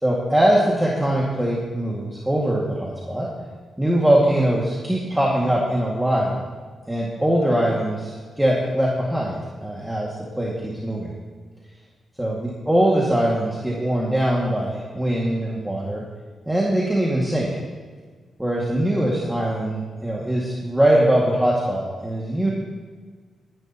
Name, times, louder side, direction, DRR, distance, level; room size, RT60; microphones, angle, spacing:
voice 1, 0.0-3.3 3.8-6.3 6.9-9.4 9.6-11.1 12.2-16.0 16.5-17.5 18.4-22.5, right 1 dB, 5° right, -4 dB, 2.0 m, -22 dB
20.5 x 11.0 x 3.0 m, 1.5 s
cardioid pair, 110°, 0 cm